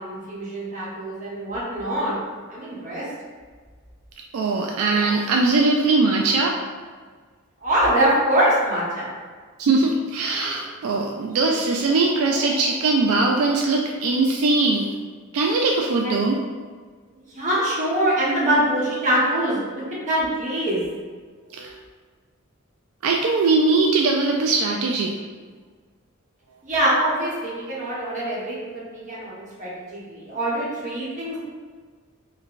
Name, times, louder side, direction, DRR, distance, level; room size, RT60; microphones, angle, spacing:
voice 1, 0.0-2.2 2.5-3.1 7.6-9.1 16.0-16.1 17.3-20.8 26.6-31.4, right 1 dB, 35° right, -7 dB, 1.0 m, -24 dB
voice 2, 4.3-6.5 9.6-15.0 15.3-16.4 21.5-21.7 23.0-25.1, right 3 dB, 75° right, 2 dB, 0.3 m, -21 dB
4.5 x 2.2 x 2.4 m, 1.5 s
head